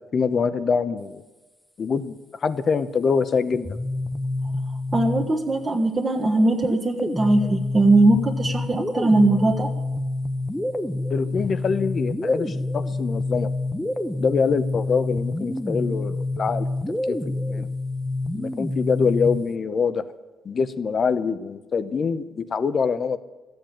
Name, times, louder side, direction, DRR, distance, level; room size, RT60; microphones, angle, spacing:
voice 1, 0.1-1.2 1.8-2.2 2.4-3.8 11.1-13.5 14.2-16.7 17.1-17.7 18.3-20.0 20.5-23.2, left 5 dB, 45° left, 13 dB, 0.8 m, -24 dB
sound 1, 3.5-5.7 6.6-19.6, left 2 dB, 5° left, 0.9 m, -28 dB
voice 2, 4.9-9.7, right 2 dB, 30° right, 0 dB, 1.4 m, -20 dB
13.0 x 8.0 x 8.8 m, 1.2 s
cardioid pair, 90°, 0 cm